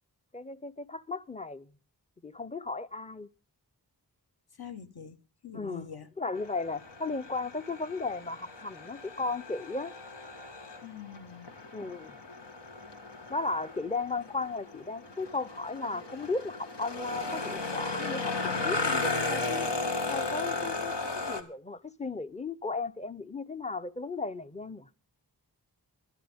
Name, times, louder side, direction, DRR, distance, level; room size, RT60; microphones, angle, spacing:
voice 1, 0.3-1.7 2.2-3.3 5.5-5.9 6.2-9.9 11.7-12.2 13.3-18.3 18.6-19.7 20.1-24.9, left 3 dB, 15° left, 0.6 m, -35 dB
voice 2, 4.6-6.1 10.8-11.5 21.0-21.1, left 7 dB, 60° left, 1.3 m, -45 dB
sound 1, 6.3-21.4, left 3 dB, 80° left, 1.8 m, -35 dB
20.0 x 12.0 x 3.5 m
wide cardioid pair, 75°, 41 cm